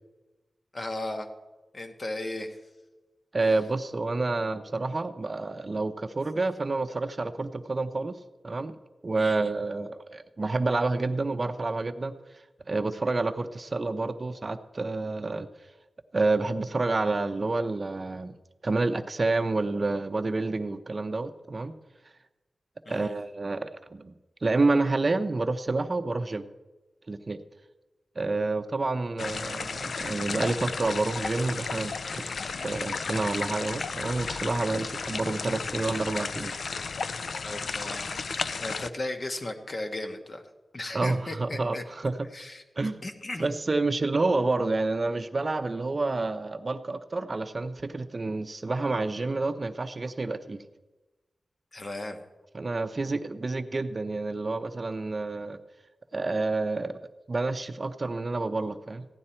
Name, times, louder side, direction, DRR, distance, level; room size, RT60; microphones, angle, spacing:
voice 1, 0.7-1.3 1.7-2.6 9.2-9.5 22.8-23.1 37.4-38.2 38.6-40.4 40.7-41.8 42.3-42.6 43.0-43.5 51.7-52.2, left 2 dB, 45° left, 5 dB, 1.3 m, -36 dB
voice 2, 3.3-8.2 8.4-8.7 9.0-12.2 12.7-15.5 16.1-18.3 18.6-21.7 22.9-24.1 24.4-26.5 27.1-27.4 28.2-32.2 32.6-36.5 40.9-42.3 42.8-43.0 43.4-50.6 52.5-55.6 56.1-57.0 57.3-59.1, right 3 dB, 40° right, 10 dB, 0.6 m, -29 dB
sound 1, 29.2-38.9, left 4 dB, 70° left, 0.4 m, -33 dB
15.5 x 11.0 x 4.4 m, 1.1 s
wide cardioid pair, 95°, 0 cm